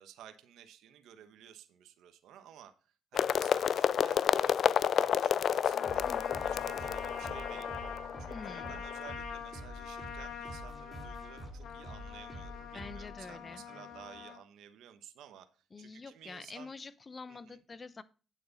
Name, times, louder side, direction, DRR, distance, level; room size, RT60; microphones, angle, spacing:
voice 1, 0.0-2.7 3.1-6.1 6.4-7.7 8.2-15.5 15.8-16.7 17.3-17.6, right 10 dB, 85° right, 9 dB, 1.1 m, -53 dB
sound 1, 3.1-9.1, left 8 dB, 60° left, 0.4 m, -30 dB
Trumpet, 5.7-14.4, left 7 dB, 80° left, 2.4 m, -44 dB
sound 2, 5.8-14.2, equal, 15° right, 4.0 m, -48 dB
voice 2, 6.1-6.4 8.3-8.8 12.7-13.7 15.7-18.0, left 4 dB, 30° left, 16 dB, 0.8 m, -47 dB
9.4 x 7.6 x 4.1 m, 0.35 s
cardioid pair, 90°, 0 cm